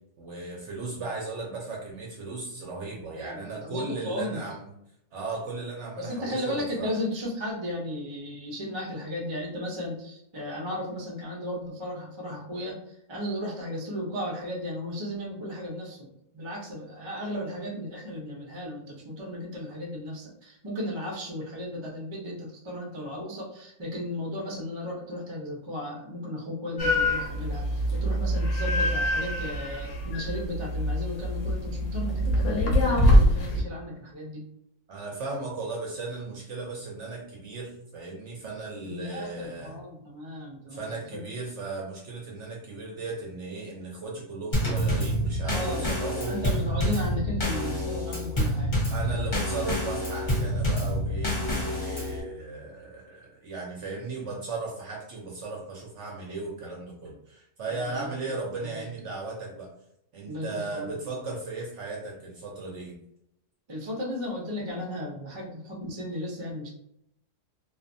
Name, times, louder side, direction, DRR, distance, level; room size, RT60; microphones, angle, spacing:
voice 1, 0.2-4.7 5.1-6.9 34.9-39.8 40.7-46.4 48.9-59.7 60.1-63.0, right 3 dB, 65° right, -2 dB, 0.7 m, -36 dB
voice 2, 3.1-4.4 6.0-34.5 38.8-41.2 45.5-45.9 46.3-48.8 57.7-58.1 58.6-58.9 60.2-61.1 63.7-66.7, left 1 dB, 45° right, -2 dB, 0.3 m, -35 dB
sound 1, 26.8-33.6, equal, 65° left, 0.8 m, -24 dB
Drum kit / Snare drum / Bass drum, 44.5-52.2, equal, 40° left, 0.8 m, -27 dB
2.5 x 2.4 x 2.5 m, 0.77 s
omnidirectional pair, 1.7 m